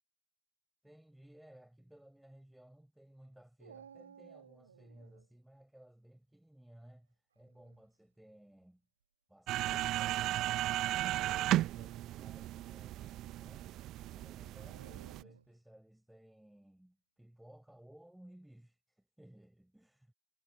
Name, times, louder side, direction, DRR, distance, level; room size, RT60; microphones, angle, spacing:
voice 1, 0.8-8.8 9.3-10.7 11.0-13.8 14.1-20.1, right 1 dB, ahead, 7.7 m, -59 dB
Dog, 3.6-5.3 7.3-7.8 8.6-8.7 10.9-12.1 14.6-15.6, right 7 dB, 70° right, 2.3 m, -58 dB
sound 1, 9.5-15.2, right 15 dB, 35° right, 1.0 m, -35 dB
figure-of-eight pair, 90°, 0 cm